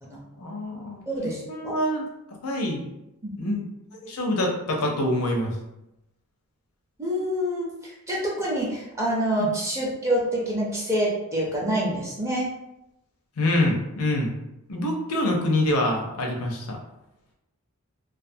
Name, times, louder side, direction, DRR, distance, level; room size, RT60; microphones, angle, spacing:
voice 1, 0.4-1.0 1.5-2.9 3.4-3.6 4.0-5.6 9.4-9.5 13.4-14.3 14.7-16.8, left 1 dB, 85° left, 1 dB, 0.6 m, -25 dB
voice 2, 1.1-1.7 3.2-3.6 7.0-12.5, right 1 dB, 15° right, -4 dB, 0.5 m, -27 dB
2.4 x 2.3 x 2.6 m, 0.88 s
head